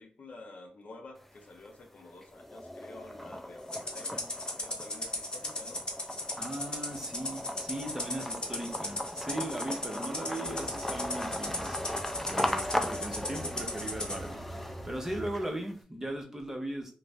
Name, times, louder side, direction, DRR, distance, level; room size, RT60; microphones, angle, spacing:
voice 1, 0.0-4.3 4.6-5.9, left 2 dB, 65° left, 0.6 m, -50 dB
sound 1, 1.2-1.8 2.2-15.7, left 1 dB, 5° left, 0.4 m, -38 dB
Rattle (instrument), 3.7-14.2, left 1 dB, 30° left, 0.8 m, -37 dB
voice 2, 6.4-16.9, right 1 dB, 15° right, 0.7 m, -38 dB
sound 2, 10.4-15.4, right 2 dB, 80° right, 0.3 m, -46 dB
2.5 x 2.0 x 3.3 m
cardioid pair, 75°, 3 cm